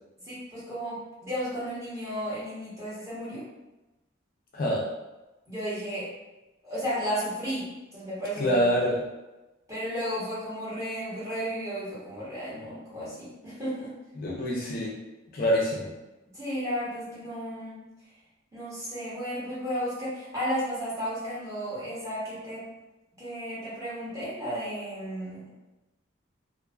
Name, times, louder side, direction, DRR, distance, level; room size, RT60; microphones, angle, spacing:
voice 1, 0.2-3.5 5.5-6.1 6.6-8.6 9.7-13.9 16.3-17.8 18.5-22.7 23.2-25.4, equal, 15° right, -10 dB, 0.9 m, -33 dB
voice 2, 4.5-4.9 8.4-9.0 14.2-15.0 15.3-15.9, equal, 45° left, -3 dB, 0.4 m, -26 dB
2.4 x 2.2 x 2.3 m, 1.1 s
head